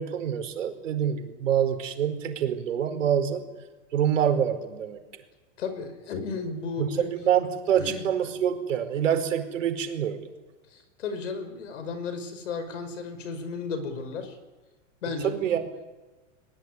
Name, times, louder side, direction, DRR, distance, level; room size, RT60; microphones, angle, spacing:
voice 1, 0.0-3.4 3.9-5.0 6.8-10.2 15.2-15.6, right 9 dB, 90° right, 7 dB, 4.7 m, -26 dB
voice 2, 5.6-7.1 7.7-8.1 10.7-14.4 15.0-15.5, left 4 dB, 75° left, 10 dB, 5.7 m, -34 dB
22.0 x 20.5 x 9.8 m, 1.2 s
supercardioid pair, 175°, 37 cm